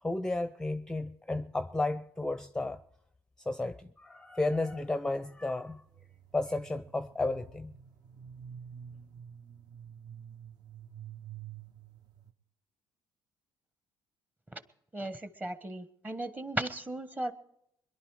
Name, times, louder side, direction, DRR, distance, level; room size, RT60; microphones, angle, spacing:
voice 1, 0.0-2.8 3.4-5.8 6.3-7.7, left 2 dB, 10° left, 0.6 m, -33 dB
sound 1, 4.6-12.3, right 8 dB, 55° right, 1.2 m, -49 dB
voice 2, 14.9-17.3, right 1 dB, 20° right, 1.3 m, -36 dB
22.0 x 11.0 x 4.8 m
supercardioid pair, 75°, 8 cm